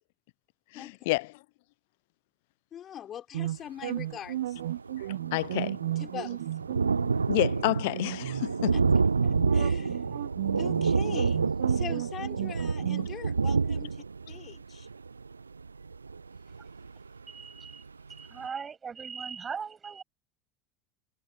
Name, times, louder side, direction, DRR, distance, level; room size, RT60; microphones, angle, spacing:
voice 1, 0.7-1.3 5.3-5.8 7.3-8.8, left 23 dB, 60° left, 0.7 m, -29 dB
voice 2, 2.7-4.6 6.0-6.4 8.7-8.8 9.2-10.0 10.5-14.9, left 10 dB, 35° left, 5.0 m, -42 dB
sound 1, 3.3-13.1, right 13 dB, 70° right, 0.9 m, -34 dB
Thunder, 4.3-4.4 4.6-17.2 17.7-17.8 18.1-18.2, right 4 dB, 85° right, 0.4 m, -29 dB
voice 3, 17.3-17.8 18.1-20.0, right 6 dB, 25° right, 7.4 m, -39 dB
figure-of-eight pair, 75°, 0 cm